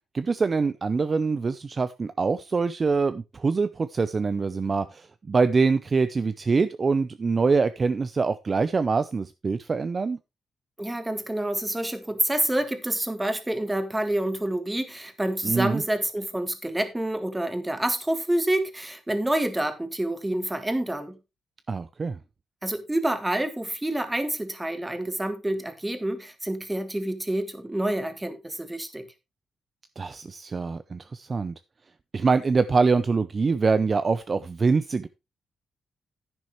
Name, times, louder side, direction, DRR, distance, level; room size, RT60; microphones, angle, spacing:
voice 1, 0.1-10.2 15.4-15.8 21.7-22.2 30.0-31.5 32.1-35.1, right 4 dB, 35° right, 0.6 m, -24 dB
voice 2, 10.8-21.2 22.6-29.0, right 1 dB, 10° right, 1.8 m, -28 dB
10.5 x 9.7 x 3.1 m
cardioid pair, 110°, 0 cm